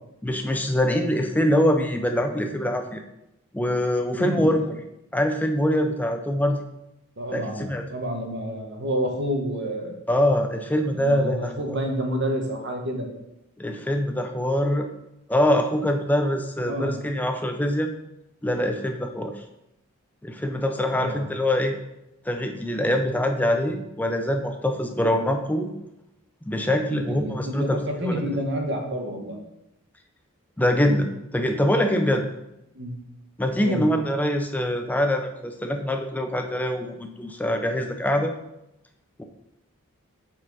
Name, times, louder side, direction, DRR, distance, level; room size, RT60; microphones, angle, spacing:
voice 1, 0.2-3.0 3.5-4.8 5.1-6.6 7.3-7.8 10.1-11.5 13.6-14.9 15.3-17.9 18.4-19.3 20.2-21.8 22.3-25.7 26.5-28.3 30.6-31.1 31.3-32.2 33.4-38.3 39.2-39.3, left 1 dB, 5° left, 5 dB, 0.4 m, -24 dB
voice 2, 7.2-10.0 10.9-13.1 16.6-17.0 20.9-21.2 26.9-29.4 32.7-33.0 33.6-33.8, equal, 50° right, 2 dB, 1.1 m, -29 dB
7.2 x 4.3 x 4.0 m, 0.87 s
head